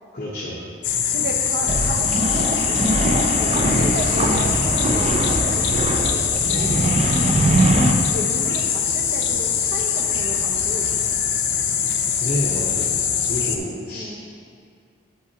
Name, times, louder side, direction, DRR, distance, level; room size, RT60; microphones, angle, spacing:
voice 1, 0.1-0.6 6.4-6.9 12.2-12.9 13.3-14.2, left 1 dB, 50° left, -6 dB, 1.0 m, -29 dB
sound 1, 0.8-13.6, left 7 dB, 75° left, 0.6 m, -22 dB
voice 2, 1.1-6.8 8.0-11.2 13.9-14.2, right 1 dB, 70° right, 2 dB, 0.8 m, -33 dB
sound 2, 1.7-7.9, right 2 dB, 35° right, 0.4 m, -21 dB
8.2 x 7.5 x 2.9 m, 2.3 s
head